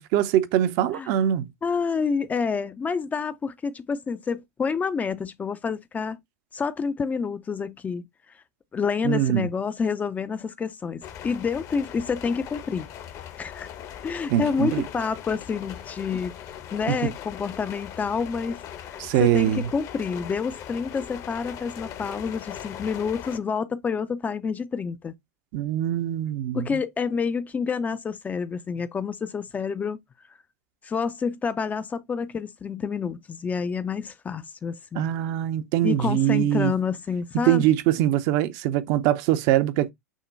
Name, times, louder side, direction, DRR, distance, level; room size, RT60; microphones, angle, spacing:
voice 1, 0.0-1.5 9.0-9.5 14.3-14.8 16.9-17.1 19.0-19.7 25.5-26.8 34.9-36.7 37.3-39.9, right 12 dB, 45° right, 0.6 m, -23 dB
voice 2, 1.6-6.2 6.5-8.0 8.7-12.9 13.4-13.7 14.0-16.3 16.7-18.6 18.9-25.1 26.5-30.0 30.8-35.1 35.8-37.6, left 5 dB, 20° left, 0.5 m, -28 dB
sound 1, 11.0-23.4, left 10 dB, 40° left, 0.8 m, -40 dB
6.3 x 2.1 x 3.9 m
figure-of-eight pair, 90°, 9 cm